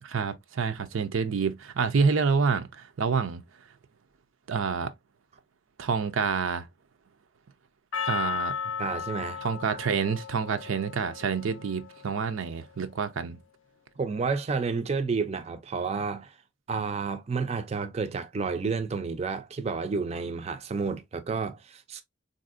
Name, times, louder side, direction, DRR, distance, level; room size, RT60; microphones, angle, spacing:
voice 1, 0.0-3.4 4.5-4.9 5.8-6.7 8.0-8.5 9.4-13.4, right 5 dB, 85° right, 0.5 m, -28 dB
Percussion, 7.9-12.4, left 6 dB, 80° left, 0.4 m, -35 dB
voice 2, 8.8-9.5 14.0-16.4 16.7-22.0, right 4 dB, 30° right, 0.4 m, -30 dB
4.0 x 2.6 x 2.4 m
head